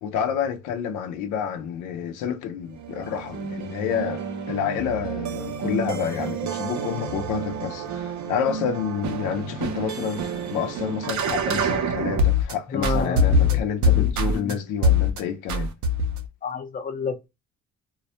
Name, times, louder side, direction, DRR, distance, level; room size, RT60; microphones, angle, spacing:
voice 1, 0.0-15.7, left 8 dB, 90° left, 0.5 m, -29 dB
sound 1, 2.8-12.5 12.8-14.5 14.8-15.2 15.5-16.3, left 1 dB, 70° right, 0.6 m, -25 dB
voice 2, 12.7-14.6 16.4-17.3, left 5 dB, 30° left, 0.5 m, -30 dB
2.2 x 2.1 x 2.7 m
cardioid pair, 90°, 30 cm